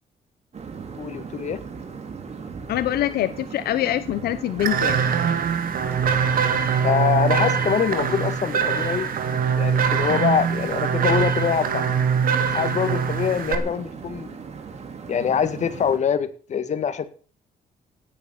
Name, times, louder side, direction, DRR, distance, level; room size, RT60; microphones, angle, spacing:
sound 1, 0.5-16.0, right 5 dB, 45° right, 3.2 m, -38 dB
voice 1, 1.0-1.6 6.1-6.3 6.8-9.1 9.6-11.9 12.5-14.3 15.1-17.1, left 7 dB, 50° left, 1.9 m, -24 dB
voice 2, 2.7-5.0, left 13 dB, 85° left, 0.9 m, -24 dB
sound 2, 4.6-13.6, right 7 dB, 65° right, 2.5 m, -23 dB
16.5 x 9.3 x 7.0 m
cardioid pair, 125°, 16 cm